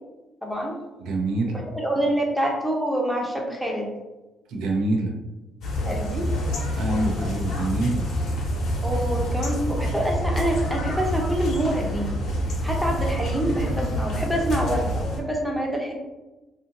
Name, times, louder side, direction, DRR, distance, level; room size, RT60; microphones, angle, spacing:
voice 1, 0.4-0.8 1.5-3.9 5.8-6.3 8.8-12.2 12.6-15.9, right 1 dB, ahead, -1 dB, 0.5 m, -26 dB
voice 2, 1.0-1.6 4.5-5.1 6.7-8.0, right 2 dB, 80° right, 0 dB, 0.5 m, -25 dB
sound 1, 5.6-15.2, equal, 70° left, 0.7 m, -27 dB
2.7 x 2.5 x 2.6 m, 1.1 s
cardioid pair, 115°, 0 cm